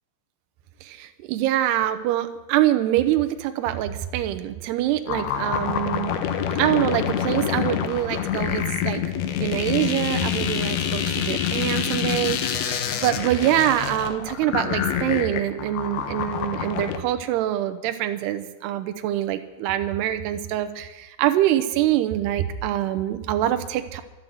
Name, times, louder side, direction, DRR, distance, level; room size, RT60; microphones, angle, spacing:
voice 1, 0.8-6.2 6.6-9.0 9.4-24.0, right 12 dB, 80° right, 8 dB, 2.4 m, -25 dB
sound 1, 5.1-17.0, left 9 dB, 75° left, 2.3 m, -26 dB
13.0 x 12.0 x 7.8 m, 1.1 s
omnidirectional pair, 5.7 m